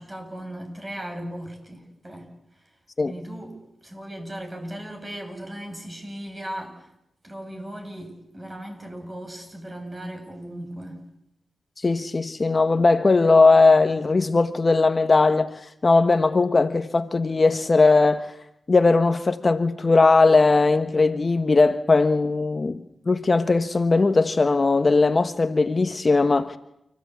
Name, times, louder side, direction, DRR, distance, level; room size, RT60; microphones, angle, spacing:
voice 1, 0.0-2.3 3.0-6.9 7.2-11.0, right 1 dB, 25° right, 7.9 m, -37 dB
voice 2, 11.8-15.5 15.8-18.3 18.7-22.8 23.1-26.6, left 3 dB, 40° left, 1.3 m, -19 dB
29.5 x 15.5 x 8.4 m
cardioid pair, 55°, 0 cm